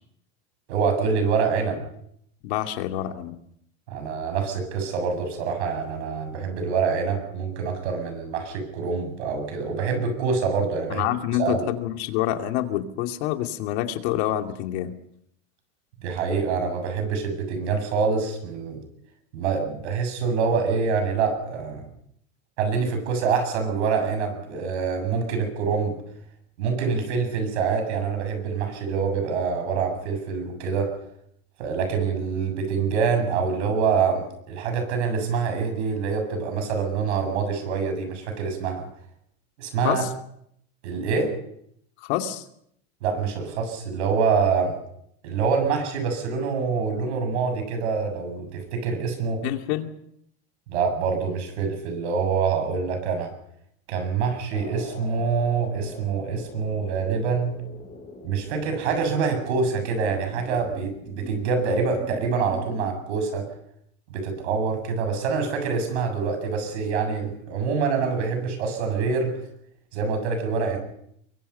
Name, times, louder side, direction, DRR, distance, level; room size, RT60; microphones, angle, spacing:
voice 1, 0.7-1.8 3.9-11.0 11.4-11.7 16.0-18.8 19.3-21.9 22.6-26.0 26.6-30.9 31.6-38.9 39.6-40.0 40.8-41.3 43.0-44.8 45.2-49.4 50.7-53.3 53.9-57.5 58.2-63.4 64.1-69.3 69.9-70.8, right 5 dB, 85° right, 6 dB, 7.5 m, -25 dB
voice 2, 2.4-3.4 10.9-14.9 39.8-40.1 42.0-42.5 49.4-49.9, left 13 dB, 70° left, 5 dB, 2.6 m, -27 dB
sound 1, 54.5-62.9, left 4 dB, 25° left, 4.8 m, -43 dB
23.5 x 23.0 x 5.6 m, 0.72 s
supercardioid pair, 130°, 33 cm